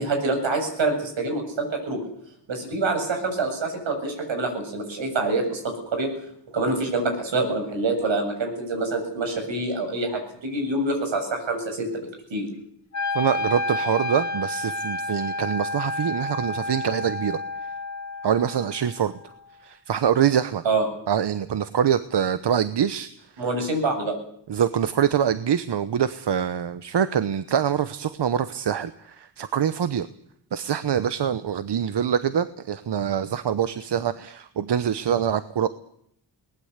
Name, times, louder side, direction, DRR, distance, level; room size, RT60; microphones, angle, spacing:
voice 1, 0.0-2.0 2.5-6.1 6.5-12.5 20.6-20.9 23.4-24.1, right 2 dB, 80° right, 4 dB, 7.9 m, -26 dB
Wind instrument woodwind instrument, 12.9-19.0, left 2 dB, 35° left, 2.3 m, -30 dB
voice 2, 13.1-17.4 18.2-19.1 19.6-20.6 21.1-23.1 24.5-30.1 30.5-35.7, right 8 dB, 65° right, 12 dB, 1.1 m, -24 dB
21.5 x 19.5 x 8.2 m, 0.69 s
wide cardioid pair, 95°, 45 cm